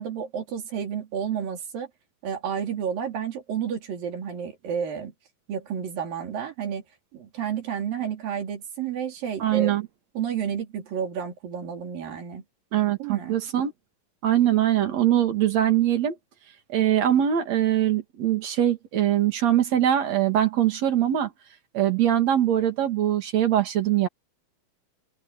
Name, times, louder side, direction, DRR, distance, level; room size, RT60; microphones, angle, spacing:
voice 1, 0.0-1.9 2.2-5.1 5.5-6.8 7.1-9.8 10.1-12.4 13.0-13.4, right 8 dB, 70° right, 4.7 m, -31 dB
voice 2, 9.4-9.8 12.7-13.7 14.2-16.1 16.7-21.3 21.7-24.1, right 11 dB, 50° right, 3.1 m, -22 dB
omnidirectional pair, 4.3 m